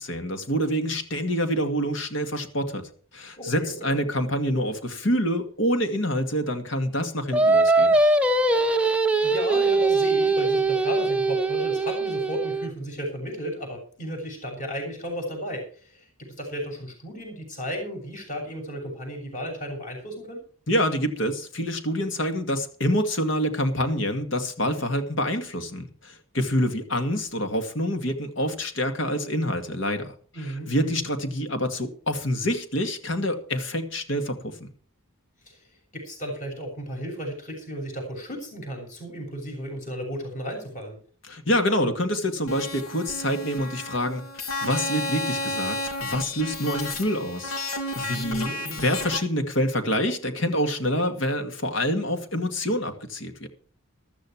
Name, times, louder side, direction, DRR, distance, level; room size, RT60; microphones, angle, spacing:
voice 1, 0.0-8.0 20.7-34.7 41.3-47.5 48.0-53.5, equal, 60° left, 2.2 m, -27 dB
voice 2, 3.4-4.0 8.7-20.4 30.3-31.0 35.5-35.6 35.9-41.0 48.1-49.0, equal, 35° left, 7.1 m, -34 dB
Singing, 7.3-12.7, right 2 dB, 5° right, 0.7 m, -21 dB
sound 1, 42.5-49.2, left 2 dB, 85° left, 2.8 m, -32 dB
14.5 x 13.0 x 4.7 m
head